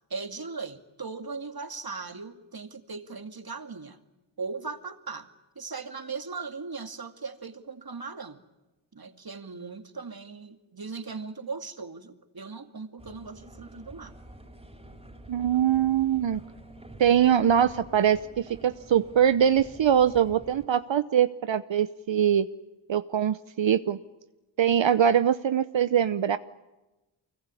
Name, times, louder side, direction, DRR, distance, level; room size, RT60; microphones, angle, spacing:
voice 1, 0.1-4.0 4.4-5.3 5.6-8.4 8.9-14.1, right 4 dB, 50° right, 9 dB, 2.5 m, -38 dB
sound 1, 13.0-20.7, right 1 dB, 10° right, 4.1 m, -48 dB
voice 2, 15.3-16.4 17.0-22.5 22.9-24.0 24.6-26.4, right 9 dB, 65° right, 13 dB, 0.9 m, -23 dB
24.5 x 22.0 x 9.8 m, 1.1 s
cardioid pair, 45°, 48 cm